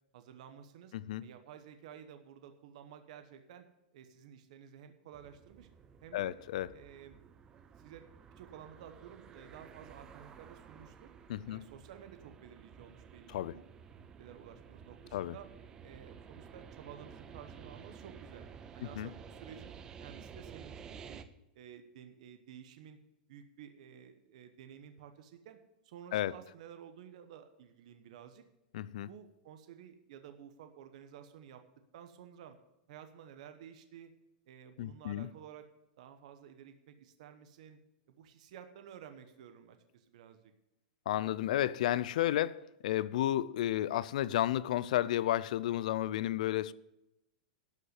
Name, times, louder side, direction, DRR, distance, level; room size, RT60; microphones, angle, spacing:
voice 1, 0.1-0.9 1.2-3.7 3.9-5.7 6.0-6.4 6.7-7.2 7.8-8.1 8.4-11.1 11.4-13.6 14.2-15.5 15.8-18.5 18.7-19.7 20.0-21.2 21.5-23.0 23.3-25.6 25.8-28.4 29.1-31.6 31.9-32.6 32.9-34.1 34.5-35.6 36.0-37.8 38.1-40.5, right 9 dB, 50° right, 1.0 m, -53 dB
sound 1, 5.1-21.2, right 7 dB, 15° right, 0.4 m, -53 dB
voice 2, 6.1-6.7 11.3-11.6 13.3-13.5 15.1-15.3 19.0-19.1 26.1-26.3 28.7-29.1 34.8-35.3 41.1-46.7, left 13 dB, 55° left, 0.4 m, -32 dB
12.0 x 5.4 x 8.0 m
supercardioid pair, 175°, 5 cm